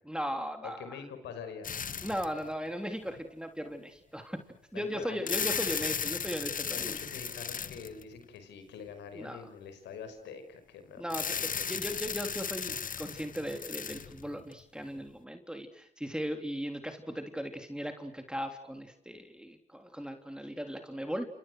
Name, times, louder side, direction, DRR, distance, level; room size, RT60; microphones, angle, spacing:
voice 1, 0.1-1.0 2.0-4.4 4.7-7.0 9.1-9.5 11.0-12.7 13.0-21.3, equal, 5° right, 5 dB, 3.5 m, -37 dB
voice 2, 0.6-1.8 4.7-5.5 6.7-11.4, left 6 dB, 90° left, 8 dB, 5.7 m, -45 dB
sound 1, 1.6-2.4 3.2-3.3 5.0-8.2 11.1-14.5, left 6 dB, 50° left, 1.1 m, -35 dB
29.5 x 28.0 x 6.4 m, 0.64 s
supercardioid pair, 55°, 18 cm